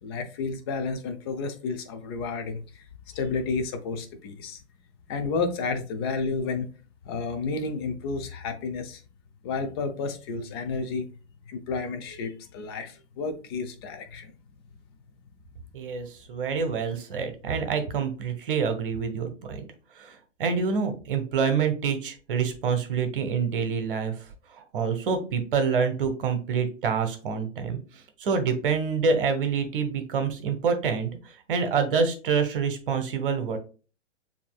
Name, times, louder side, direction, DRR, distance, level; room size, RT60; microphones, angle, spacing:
voice 1, 0.0-2.8 3.1-4.6 5.1-6.7 7.0-9.0 9.4-11.1 11.5-14.3, left 4 dB, 20° left, 0.4 m, -31 dB
voice 2, 15.7-19.6 20.0-24.1 24.7-27.8 28.2-31.1 31.5-33.6, right 5 dB, 45° right, 1.0 m, -26 dB
6.9 x 2.8 x 2.3 m
figure-of-eight pair, 110°, 37 cm